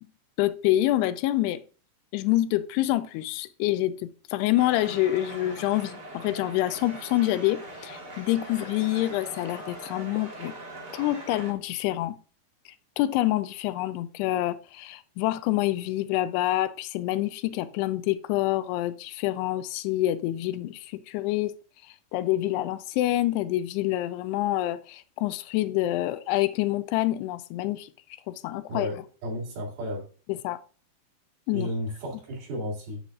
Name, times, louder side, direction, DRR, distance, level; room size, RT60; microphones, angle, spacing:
voice 1, 0.4-1.6 2.1-10.5 10.9-12.2 13.0-21.5 22.1-27.9 28.3-28.9 30.3-30.6 31.5-31.7, left 15 dB, 80° left, 2.6 m, -27 dB
sound 1, 4.6-11.5, right 1 dB, 40° right, 1.4 m, -41 dB
voice 2, 28.7-30.1 31.5-33.0, equal, 65° right, 4.4 m, -33 dB
9.9 x 8.1 x 2.5 m
omnidirectional pair, 4.8 m